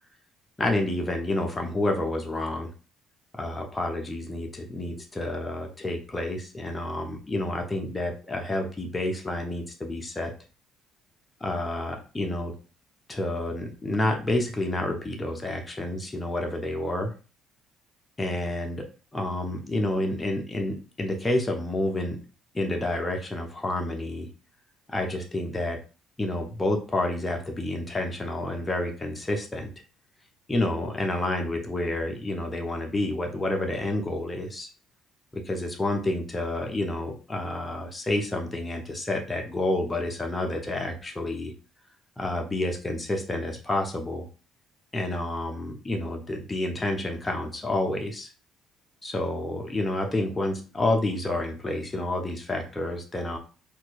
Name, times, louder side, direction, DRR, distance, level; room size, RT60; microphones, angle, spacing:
voice 1, 0.6-2.7 3.3-10.3 11.4-12.5 13.1-17.1 18.2-18.9 19.1-22.2 22.5-24.3 24.9-25.8 26.2-29.7 30.5-34.7 35.3-41.5 42.2-44.3 44.9-48.3 49.0-53.4, left 1 dB, 20° left, 2 dB, 0.8 m, -29 dB
4.2 x 2.6 x 2.3 m, 0.35 s
figure-of-eight pair, 50°, 0 cm